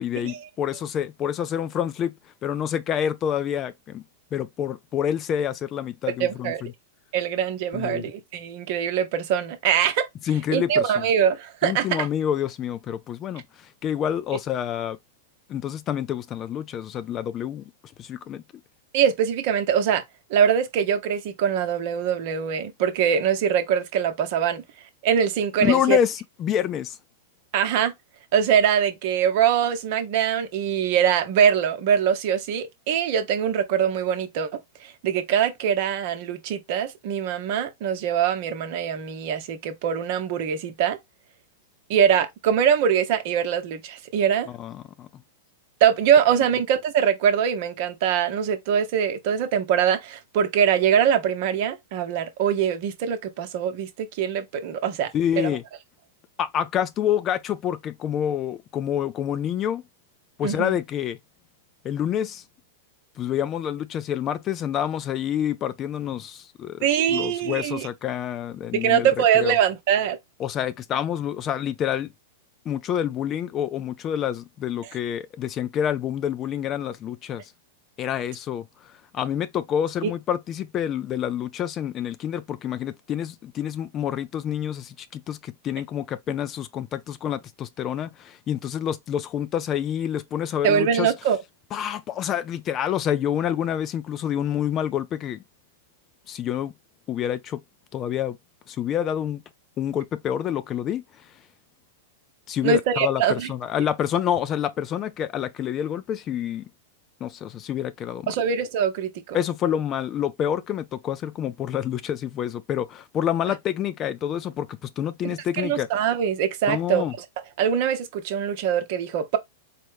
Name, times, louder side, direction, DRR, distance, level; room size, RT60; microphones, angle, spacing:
voice 1, 0.0-2.2 2.4-4.0 4.3-6.7 7.7-8.1 10.3-11.1 11.6-15.0 15.5-17.6 18.0-18.4 25.6-27.0 44.5-45.1 55.1-55.6 56.4-59.8 60.4-61.2 61.8-62.4 63.2-69.1 69.3-69.5 70.4-72.1 72.7-77.5 78.0-91.1 91.7-95.4 96.3-96.7 97.1-97.6 97.9-98.4 98.7-99.4 99.8-101.0 102.5-106.7 107.2-108.3 109.3-115.9 116.7-117.1, left 10 dB, 30° left, 0.4 m, -27 dB
voice 2, 6.2-6.6 7.1-10.1 10.5-12.1 18.9-20.0 20.3-24.6 25.0-26.0 27.5-27.9 28.3-41.0 41.9-44.5 45.8-55.1 55.4-55.5 60.4-60.8 66.8-67.9 68.7-70.2 90.6-91.4 102.6-103.5 108.3-109.4 115.2-117.0 117.6-119.4, right 8 dB, 55° right, 0.8 m, -23 dB
4.2 x 2.1 x 3.2 m
hypercardioid pair, 115°, 0 cm